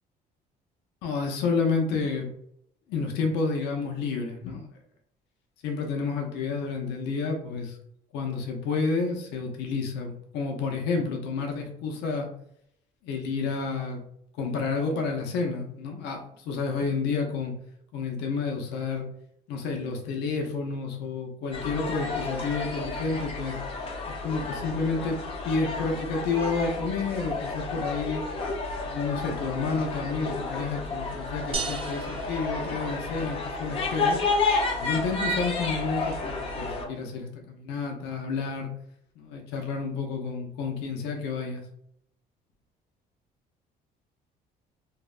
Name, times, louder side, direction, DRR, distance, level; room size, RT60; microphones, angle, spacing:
voice 1, 1.0-2.3 2.9-4.7 5.6-7.8 8.1-12.3 13.0-14.0 14.4-17.5 17.9-19.1 19.5-23.6 24.1-25.2 25.4-28.2 28.8-34.2 34.8-38.7 39.2-41.6, left 4 dB, 85° left, 2 dB, 0.5 m, -30 dB
sound 1, 21.5-36.9, left 3 dB, 35° left, 0.6 m, -31 dB
sound 2, 31.5-33.4, right 4 dB, 30° right, 0.4 m, -36 dB
2.7 x 2.0 x 2.3 m, 0.72 s
cardioid pair, 110°, 17 cm